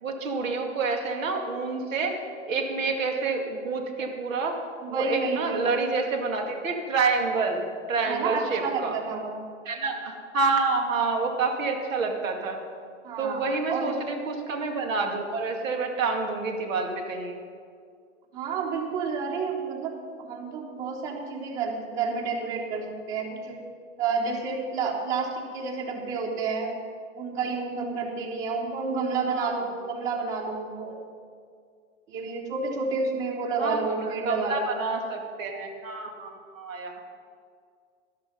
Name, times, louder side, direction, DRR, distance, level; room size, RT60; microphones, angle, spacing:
voice 1, 0.0-2.2 2.5-4.6 4.9-7.6 7.9-9.0 9.7-12.6 13.2-17.4 29.3-29.6 33.6-37.0, right 4 dB, 80° right, 3 dB, 2.5 m, -28 dB
voice 2, 4.8-5.6 8.1-9.4 13.0-13.4 13.7-14.0 18.3-23.5 24.0-26.7 27.2-31.0 32.1-34.8, right 4 dB, 45° right, -3 dB, 3.7 m, -30 dB
12.5 x 12.5 x 5.4 m, 2.2 s
hypercardioid pair, 130°, 39 cm